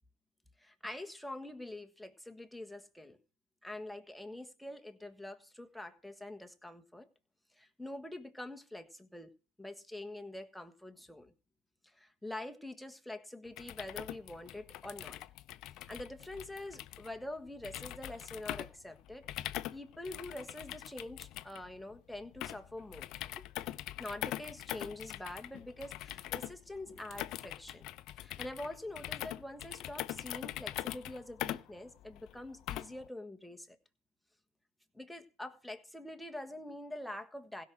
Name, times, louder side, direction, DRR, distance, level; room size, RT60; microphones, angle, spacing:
voice 1, 0.6-3.2 3.6-7.1 7.6-9.3 9.6-11.3 11.9-15.2 15.9-19.3 19.7-23.1 23.4-23.5 24.0-27.9 28.2-33.8 34.9-37.7, left 1 dB, ahead, 6 dB, 1.4 m, -45 dB
sound 1, 13.5-33.1, left 14 dB, 45° left, 0.7 m, -43 dB
16.5 x 6.0 x 6.2 m, 0.35 s
hypercardioid pair, 110°, 0 cm